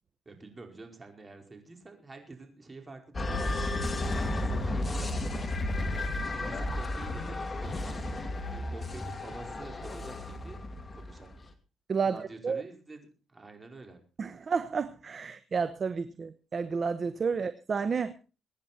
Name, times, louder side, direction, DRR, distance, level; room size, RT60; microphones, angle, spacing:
voice 1, 0.2-5.4 6.1-8.0 8.5-10.6 10.9-11.4 12.0-14.0, right 3 dB, 25° right, 4 dB, 4.9 m, -48 dB
sound 1, 3.1-11.4, left 2 dB, 25° left, 2.5 m, -33 dB
voice 2, 14.2-18.1, right 5 dB, 40° right, 12 dB, 1.0 m, -31 dB
23.5 x 10.0 x 4.3 m, 0.34 s
cardioid pair, 90°, 0 cm